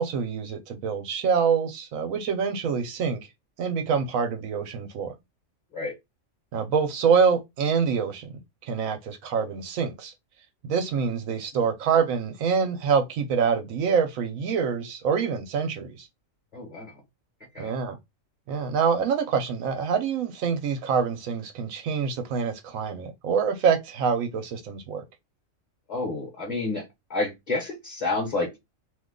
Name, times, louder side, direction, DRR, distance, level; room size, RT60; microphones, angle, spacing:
voice 1, 0.0-3.2 3.6-5.1 6.5-10.1 10.6-16.1 17.6-18.0 18.5-25.0, right 6 dB, 90° right, 1.1 m, -26 dB
voice 2, 16.5-17.0 17.5-17.7 25.9-26.8 27.1-28.6, left 3 dB, 35° left, 1.0 m, -30 dB
2.7 x 2.2 x 3.7 m
omnidirectional pair, 1.4 m